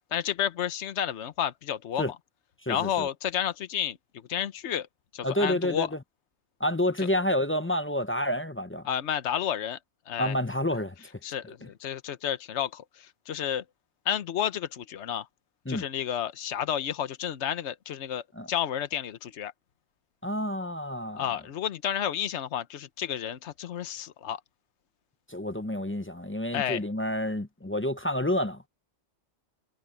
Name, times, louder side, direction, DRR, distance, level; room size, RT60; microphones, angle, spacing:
voice 1, 0.1-2.2 2.7-4.0 4.3-4.9 5.1-5.9 7.0-7.1 8.8-9.8 10.1-10.3 11.2-13.6 14.0-15.3 15.7-19.5 21.2-24.4 26.5-26.8, left 9 dB, 70° left, 1.2 m, -31 dB
voice 2, 2.6-3.1 5.2-6.0 6.6-8.9 10.2-10.9 11.6-11.7 15.7-15.8 18.3-18.5 20.2-21.2 25.3-28.7, left 1 dB, 15° left, 0.4 m, -29 dB
omnidirectional pair, 1.2 m